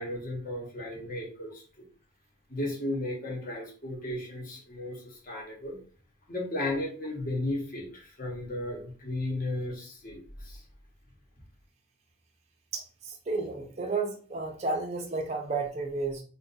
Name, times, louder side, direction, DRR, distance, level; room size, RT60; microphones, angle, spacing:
voice 1, 0.0-1.8 2.5-5.8 6.3-10.6, left 1 dB, 40° left, -1 dB, 1.1 m, -35 dB
voice 2, 12.7-16.2, right 3 dB, 30° right, 2 dB, 0.5 m, -32 dB
2.6 x 2.4 x 3.9 m, 0.42 s
head